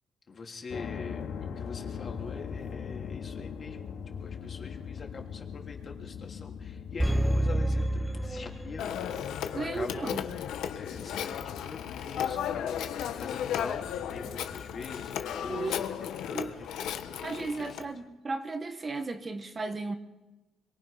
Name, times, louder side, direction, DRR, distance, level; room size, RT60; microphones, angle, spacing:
voice 1, 0.3-10.4 10.7-17.9, left 4 dB, 40° left, 2 dB, 3.3 m, -44 dB
sound 1, 0.7-15.6, left 7 dB, 70° left, 2.5 m, -42 dB
sound 2, 7.0-9.2 9.5-9.6, right 1 dB, ahead, 1.0 m, -28 dB
Telephone, 8.8-17.9, left 9 dB, 85° left, 1.4 m, -35 dB
voice 2, 9.5-10.2 15.5-15.8 16.3-16.5 17.2-20.0, right 3 dB, 30° right, 7 dB, 1.4 m, -35 dB
26.0 x 23.0 x 5.8 m, 1.2 s
cardioid pair, 110°, 0 cm